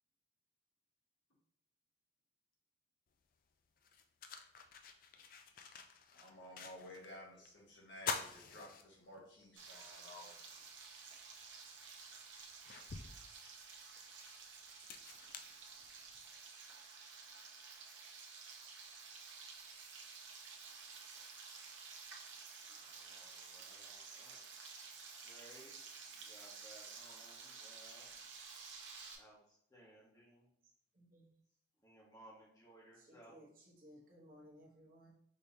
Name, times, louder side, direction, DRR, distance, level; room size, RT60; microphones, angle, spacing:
sound 1, 3.1-3.2 3.8-7.1 7.4-7.5 7.9-9.4 9.9-10.0 11.4-11.5 12.1-16.3, left 5 dB, 50° left, 0.4 m, -47 dB
voice 1, 6.1-10.6, left 1 dB, 75° left, 1.5 m, -54 dB
Frying (food), 9.6-29.1, right 5 dB, 75° right, 0.9 m, -53 dB
voice 2, 22.6-24.4 25.1-28.1 29.2-30.5 31.8-33.4, right 1 dB, 20° left, 1.5 m, -61 dB
voice 3, 30.9-31.3 32.9-35.1, equal, 50° right, 1.1 m, -60 dB
5.3 x 3.3 x 2.8 m
head